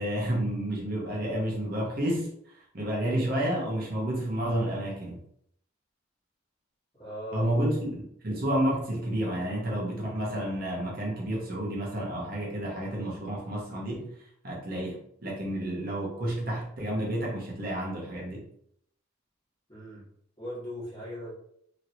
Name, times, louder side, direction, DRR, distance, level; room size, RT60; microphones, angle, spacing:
voice 1, 0.0-2.3 2.7-5.2 7.3-14.1 14.4-18.4, right 1 dB, 50° right, -3 dB, 0.9 m, -30 dB
voice 2, 6.9-7.5 19.7-20.0 20.4-21.3, equal, 20° left, -8 dB, 1.4 m, -39 dB
3.1 x 2.8 x 2.7 m, 0.69 s
head